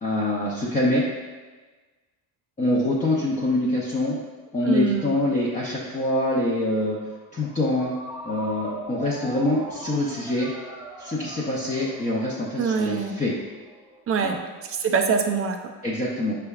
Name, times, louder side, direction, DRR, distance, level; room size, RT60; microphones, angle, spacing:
voice 1, 0.0-1.0 2.6-4.2 4.5-7.0 7.3-7.9 8.2-10.5 11.0-13.3 14.2-14.3 15.8-16.4, left 1 dB, 20° left, -6 dB, 0.6 m, -25 dB
voice 2, 4.6-5.1 12.6-13.2 14.1-14.4 14.6-15.7, right 5 dB, 35° right, 5 dB, 0.5 m, -24 dB
Ringtone, 6.7-14.2, right 1 dB, 10° right, 0.9 m, -42 dB
5.6 x 3.4 x 2.3 m, 1.3 s
cardioid pair, 100°, 39 cm